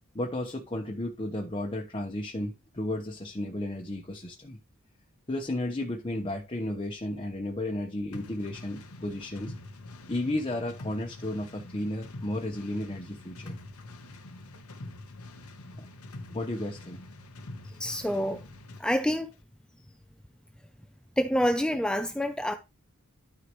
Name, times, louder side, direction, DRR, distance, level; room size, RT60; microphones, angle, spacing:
voice 1, 0.1-4.6 5.3-9.5 10.1-13.5 15.7-15.9 16.3-17.0, left 1 dB, 25° left, 1.1 m, -33 dB
sound 1, 8.1-18.9, left 2 dB, 90° left, 1.1 m, -45 dB
voice 2, 17.8-18.4 18.8-19.3 21.2-22.5, equal, 5° left, 0.6 m, -27 dB
12.5 x 4.7 x 3.1 m
head